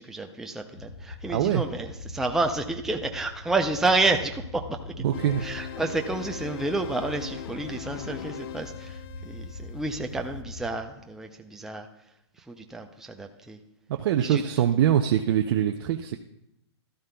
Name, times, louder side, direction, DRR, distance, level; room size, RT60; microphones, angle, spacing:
voice 1, 0.0-5.0 5.4-11.9 12.5-13.6 14.2-14.4, right 2 dB, 5° right, 4 dB, 0.5 m, -30 dB
sound 1, 0.8-10.7, left 2 dB, 70° left, 4.5 m, -42 dB
voice 2, 1.3-1.6 5.0-5.5 13.9-16.2, right 10 dB, 50° right, 5 dB, 0.5 m, -23 dB
sound 2, 5.1-10.4, left 11 dB, 55° left, 0.5 m, -41 dB
13.5 x 12.5 x 2.3 m, 0.82 s
hypercardioid pair, 140°, 15 cm